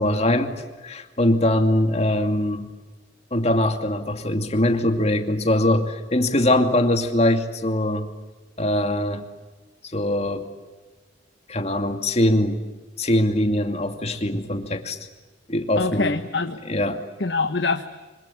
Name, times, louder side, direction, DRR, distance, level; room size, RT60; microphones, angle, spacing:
voice 1, 0.0-2.7 3.3-8.1 8.6-9.2 9.9-10.5 11.5-12.6 13.0-15.0 15.5-16.2 16.6-17.0, left 1 dB, 35° left, 6 dB, 2.5 m, -22 dB
voice 2, 15.8-16.6 17.2-17.8, left 3 dB, 70° left, 7 dB, 1.3 m, -24 dB
26.0 x 25.5 x 8.6 m, 1.2 s
head